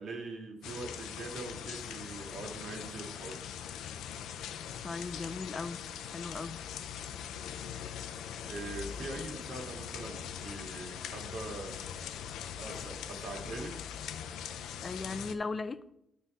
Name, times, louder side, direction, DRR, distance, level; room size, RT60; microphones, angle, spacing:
voice 1, 0.0-3.4 8.5-11.8 12.6-13.8, right 2 dB, 60° right, 2.0 m, -42 dB
sound 1, 0.6-15.3, left 9 dB, 85° left, 0.5 m, -42 dB
voice 2, 4.8-5.8 6.1-6.6 14.8-15.9, left 4 dB, 30° left, 0.4 m, -37 dB
9.1 x 4.2 x 5.5 m
cardioid pair, 90°, 0 cm